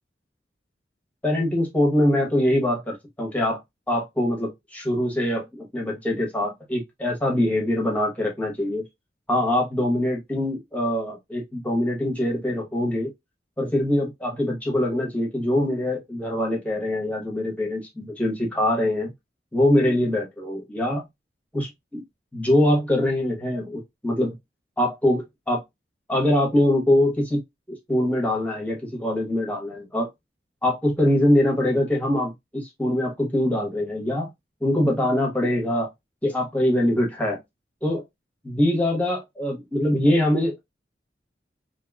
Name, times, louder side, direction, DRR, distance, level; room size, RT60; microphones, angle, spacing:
voice 1, 1.2-3.6 3.9-8.8 9.3-13.1 13.6-19.1 19.5-21.1 21.5-22.0 22.3-24.3 24.8-25.6 26.1-27.4 27.9-30.1 30.6-34.3 34.6-35.9 36.2-37.4 37.8-38.0 38.4-40.6, left 1 dB, 10° left, 1.0 m, -23 dB
2.9 x 2.8 x 2.3 m
head